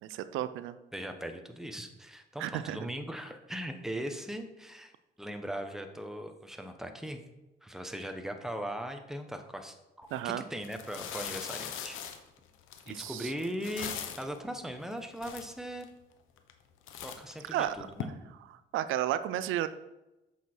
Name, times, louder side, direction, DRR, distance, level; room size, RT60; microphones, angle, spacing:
voice 1, 0.0-0.8 2.4-2.8 10.1-10.4 12.9-13.3 17.5-17.7 18.4-19.7, right 12 dB, 85° right, 13 dB, 0.5 m, -33 dB
voice 2, 0.9-4.9 5.2-7.2 7.6-12.0 12.9-15.9 17.0-18.1, equal, ahead, 5 dB, 1.1 m, -39 dB
sound 1, 10.0-10.2 10.6-14.4 14.9-15.0 15.2-15.9 16.4-16.6 16.9-18.0, left 9 dB, 90° left, 0.9 m, -41 dB
8.2 x 6.2 x 4.6 m, 0.97 s
cardioid pair, 90°, 20 cm